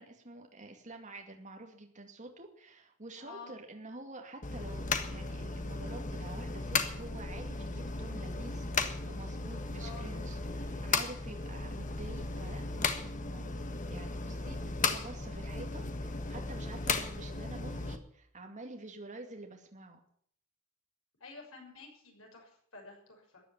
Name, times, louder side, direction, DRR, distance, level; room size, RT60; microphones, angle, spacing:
voice 1, 0.0-13.6 13.9-20.0, right 2 dB, 35° right, 2 dB, 2.3 m, -48 dB
voice 2, 3.2-3.5 9.8-10.1 21.2-23.4, left 4 dB, 85° left, 1 dB, 6.5 m, -50 dB
sound 1, 4.4-18.0, left 4 dB, 40° left, 1.5 m, -36 dB
14.5 x 10.0 x 9.1 m, 0.64 s
head